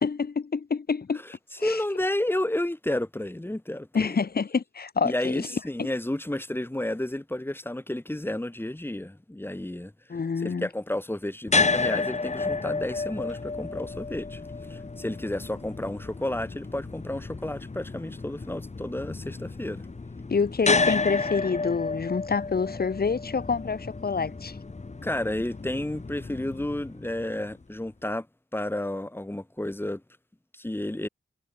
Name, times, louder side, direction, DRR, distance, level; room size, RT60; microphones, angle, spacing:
voice 1, 0.0-1.2 1.6-1.8 3.9-5.5 10.1-10.7 20.3-24.6, left 5 dB, 50° left, 0.9 m, -27 dB
voice 2, 1.6-4.1 5.0-9.9 10.4-14.4 14.7-19.9 25.0-28.3 28.5-30.0 30.5-31.1, left 1 dB, 10° left, 1.6 m, -31 dB
sound 1, 11.5-27.6, left 3 dB, 35° left, 1.3 m, -31 dB
wide cardioid pair, 115°, 20 cm